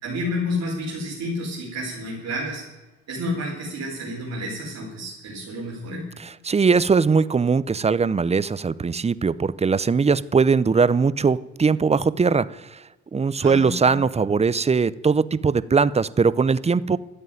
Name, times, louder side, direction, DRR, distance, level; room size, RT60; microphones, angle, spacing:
voice 1, 0.0-2.6 3.1-6.1 13.4-14.0, left 1 dB, 60° right, -4 dB, 4.6 m, -30 dB
voice 2, 6.2-12.8 13.1-17.0, right 5 dB, 20° right, 19 dB, 0.6 m, -20 dB
13.5 x 8.2 x 9.1 m, 1.1 s
cardioid pair, 90°, 30 cm